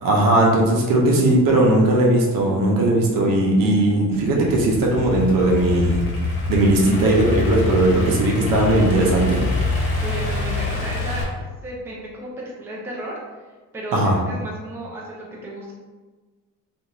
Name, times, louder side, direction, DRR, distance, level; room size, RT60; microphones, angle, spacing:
voice 1, 0.0-6.0 6.5-9.4 13.9-14.2, right 1 dB, 65° right, -1 dB, 0.7 m, -18 dB
Idling / Accelerating revving vroom, 4.1-11.2, left 2 dB, 70° left, 0.9 m, -25 dB
voice 2, 10.0-11.2 11.6-13.1 13.7-15.7, right 1 dB, 5° right, -4 dB, 0.4 m, -33 dB
2.5 x 2.4 x 2.9 m, 1.3 s
cardioid pair, 140°, 36 cm